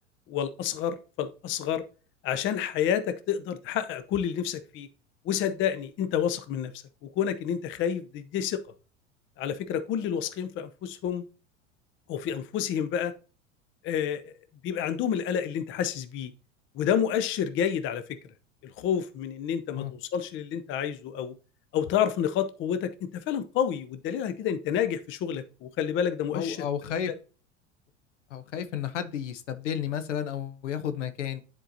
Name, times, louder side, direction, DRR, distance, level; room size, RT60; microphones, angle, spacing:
voice 1, 0.3-1.8 2.2-4.9 5.2-6.7 7.0-8.6 9.4-11.2 12.1-13.1 13.8-14.3 14.6-16.3 16.7-18.0 18.6-21.3 21.7-22.9 23.3-26.6, left 9 dB, 30° left, 11 dB, 0.6 m, -29 dB
voice 2, 26.3-27.1 28.3-31.4, left 9 dB, 70° left, 11 dB, 0.9 m, -32 dB
10.0 x 4.4 x 2.7 m, 0.35 s
figure-of-eight pair, 80°, 38 cm